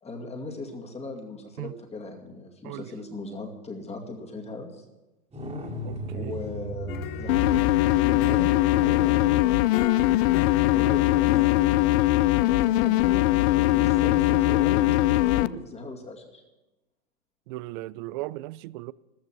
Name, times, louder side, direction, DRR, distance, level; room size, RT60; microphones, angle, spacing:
voice 1, 0.0-4.8 6.1-9.5 10.2-11.3 12.4-16.4, left 2 dB, 15° left, 2.3 m, -38 dB
sound 1, 5.3-10.7 13.8-13.9, right 2 dB, 15° right, 2.5 m, -38 dB
voice 2, 5.8-6.3 17.5-18.9, right 18 dB, 40° right, 0.4 m, -37 dB
sound 2, 6.9-11.9, left 9 dB, 35° left, 1.0 m, -38 dB
sound 3, 7.3-15.5, left 16 dB, 50° left, 0.6 m, -21 dB
14.0 x 13.5 x 6.0 m
hypercardioid pair, 115°, 40 cm